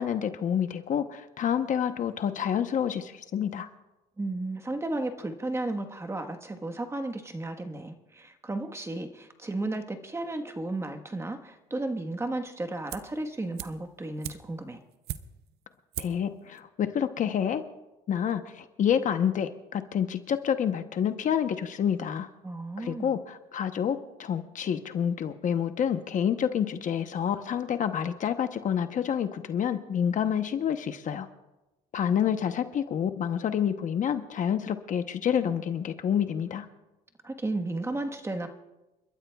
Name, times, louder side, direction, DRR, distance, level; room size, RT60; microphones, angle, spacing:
voice 1, 0.0-3.7 16.0-17.6 18.1-22.3 22.8-31.3 31.9-36.7, left 8 dB, 50° left, 9 dB, 0.9 m, -28 dB
voice 2, 4.2-14.8 22.4-23.1 37.2-38.5, right 2 dB, 15° right, 6 dB, 1.3 m, -34 dB
sound 1, 12.9-13.2 13.6-15.6 15.9-16.3 16.6-16.7, right 13 dB, 70° right, 0.7 m, -39 dB
29.5 x 13.0 x 2.3 m, 1.0 s
cardioid pair, 110°, 17 cm